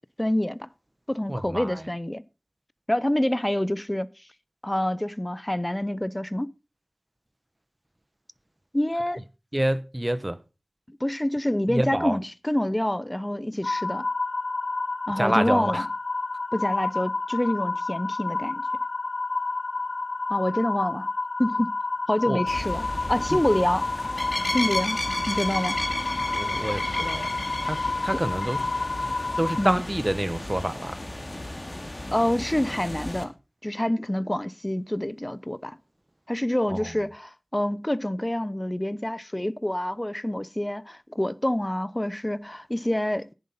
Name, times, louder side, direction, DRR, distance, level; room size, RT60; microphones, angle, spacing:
voice 1, 0.2-0.7 1.1-2.2 2.9-4.1 4.6-6.5 8.7-9.2 11.0-14.1 15.1-15.9 16.5-18.6 20.3-21.1 21.4-21.7 22.1-23.9 24.5-25.0 25.3-25.8 29.6-29.8 32.1-33.3 33.6-35.8 36.3-43.3, left 1 dB, 20° left, 0.6 m, -27 dB
voice 2, 1.3-1.8 9.5-10.4 11.7-12.2 15.2-15.9 22.3-22.4 23.3-23.4 26.3-27.3 27.6-28.7 29.4-31.0 36.7-36.9, right 1 dB, 30° right, 0.9 m, -27 dB
sound 1, 13.6-29.7, left 3 dB, 80° left, 0.8 m, -30 dB
sound 2, 22.5-33.2, left 1 dB, 40° left, 2.1 m, -33 dB
10.5 x 8.0 x 5.5 m
wide cardioid pair, 45°, 0 cm